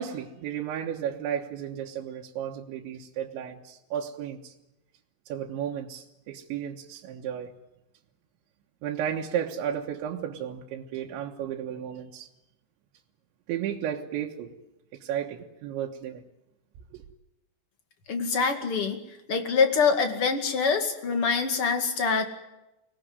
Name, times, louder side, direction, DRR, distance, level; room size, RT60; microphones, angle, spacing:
voice 1, 0.0-4.5 5.3-7.5 8.8-12.3 13.5-14.5 14.9-16.2 16.9-17.0, right 9 dB, 85° right, 0 dB, 3.7 m, -33 dB
voice 2, 18.1-19.0 19.3-22.3, left 5 dB, 40° left, 5 dB, 2.4 m, -25 dB
24.5 x 18.5 x 9.6 m, 0.95 s
omnidirectional pair, 5.1 m